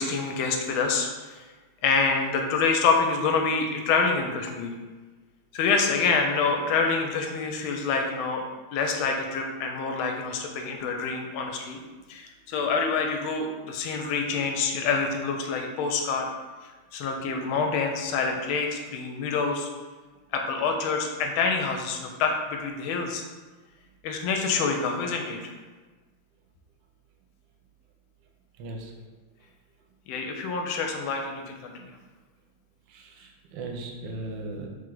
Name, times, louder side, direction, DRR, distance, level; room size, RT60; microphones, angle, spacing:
voice 1, 0.0-1.4 1.8-4.7 5.5-8.4 8.7-11.8 12.1-16.3 16.9-19.7 20.3-23.2 24.0-25.5 30.1-31.9, left 4 dB, 80° left, 3 dB, 1.4 m, -26 dB
voice 2, 28.6-28.9 32.9-34.7, right 2 dB, 70° right, 2 dB, 1.2 m, -37 dB
3.4 x 3.3 x 3.8 m, 1.3 s
omnidirectional pair, 2.3 m